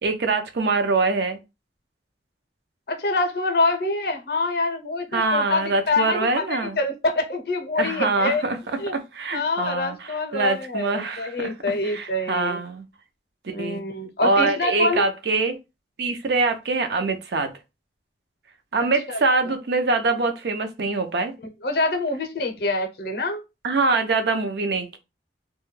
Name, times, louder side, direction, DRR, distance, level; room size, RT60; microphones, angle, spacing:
voice 1, 0.0-1.4 5.1-6.8 7.8-8.6 8.9-11.5 11.8-12.8 13.4-13.8 14.2-15.6 16.0-17.5 18.7-21.3 23.6-25.0, right 3 dB, 65° right, 0.5 m, -24 dB
voice 2, 2.9-8.4 8.8-8.9 9.3-12.6 13.5-15.1 18.8-19.2 21.4-23.4, left 2 dB, 60° left, 0.5 m, -26 dB
2.2 x 2.1 x 3.0 m
head